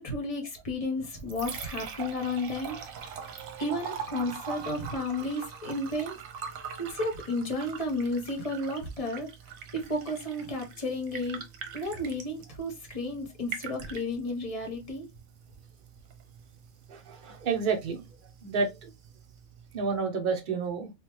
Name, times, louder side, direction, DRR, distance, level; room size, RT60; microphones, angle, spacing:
voice 1, 0.0-2.8 3.6-6.2 6.8-9.3 9.7-11.4 11.7-15.1, left 1 dB, 35° left, 0.7 m, -32 dB
Liquid, 1.0-20.0, right 7 dB, 80° right, 1.1 m, -43 dB
voice 2, 16.9-18.0 18.4-18.9 19.7-20.9, right 5 dB, 45° right, 0.8 m, -30 dB
3.3 x 2.3 x 3.0 m
omnidirectional pair, 1.4 m